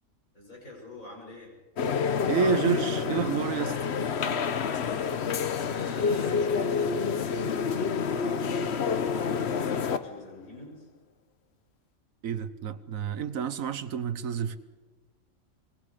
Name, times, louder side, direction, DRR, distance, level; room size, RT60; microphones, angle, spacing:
voice 1, 0.3-1.5 5.7-10.9, left 1 dB, 90° left, 7.6 m, -46 dB
sound 1, 1.8-10.2, left 6 dB, 55° left, 1.1 m, -28 dB
voice 2, 2.3-3.8 12.2-14.6, right 7 dB, 85° right, 1.4 m, -29 dB
26.0 x 22.5 x 5.1 m
omnidirectional pair, 1.4 m